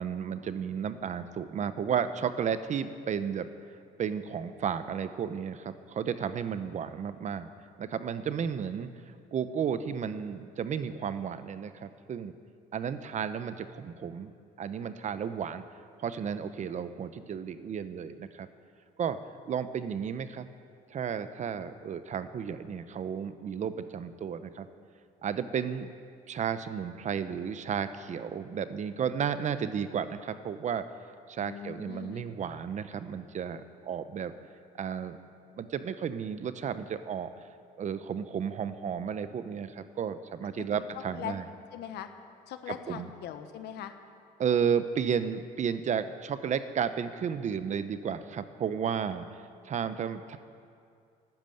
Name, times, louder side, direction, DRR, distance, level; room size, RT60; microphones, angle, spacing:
voice 1, 0.0-3.5 4.0-7.5 7.8-12.3 12.7-14.3 14.6-15.6 16.0-18.5 19.0-19.2 19.5-20.5 20.9-24.7 25.2-25.9 26.3-30.9 31.3-34.3 34.8-35.2 35.6-37.3 37.8-41.4 42.7-43.1 44.4-50.4, right 7 dB, 45° right, 11 dB, 0.9 m, -33 dB
voice 2, 31.4-32.2 40.6-40.9 41.1-41.3 41.7-42.1 42.5-43.9, left 10 dB, 75° left, 8 dB, 1.4 m, -40 dB
12.0 x 12.0 x 9.1 m, 2.4 s
cardioid pair, 110°, 17 cm